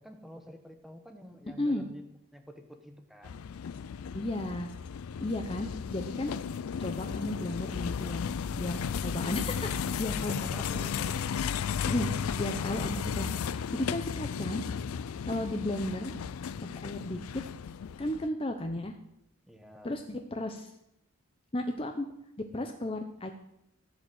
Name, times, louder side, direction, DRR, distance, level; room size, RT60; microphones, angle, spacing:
voice 1, 0.0-2.1 2.3-3.5 10.2-11.1 19.5-19.9, equal, ahead, 5 dB, 1.1 m, -48 dB
sound 1, 3.2-18.3, left 7 dB, 90° left, 0.4 m, -34 dB
voice 2, 4.1-4.7 5.2-6.3 6.8-8.2 8.6-10.9 11.8-14.6 15.2-16.1 16.8-17.4 18.0-18.9 19.8-20.7 21.5-22.1 22.5-23.3, left 1 dB, 25° left, 5 dB, 0.7 m, -34 dB
14.5 x 5.1 x 8.1 m, 0.81 s
head